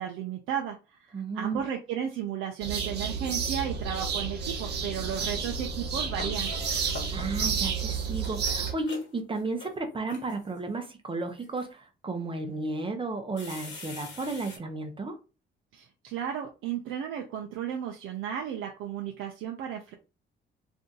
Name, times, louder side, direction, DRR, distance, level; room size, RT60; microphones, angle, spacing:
voice 1, 0.0-6.5 15.7-19.9, right 9 dB, 90° right, 0.5 m, -34 dB
voice 2, 1.1-1.6 7.1-15.2, right 3 dB, 25° right, 0.6 m, -33 dB
sound 1, 2.6-8.7, right 6 dB, 55° right, 0.8 m, -31 dB
sound 2, 5.8-7.7 8.0-10.6 11.2-11.7 12.4-12.5 13.4-14.6, left 3 dB, 65° left, 1.2 m, -44 dB
2.6 x 2.3 x 3.8 m
cardioid pair, 90°, 20 cm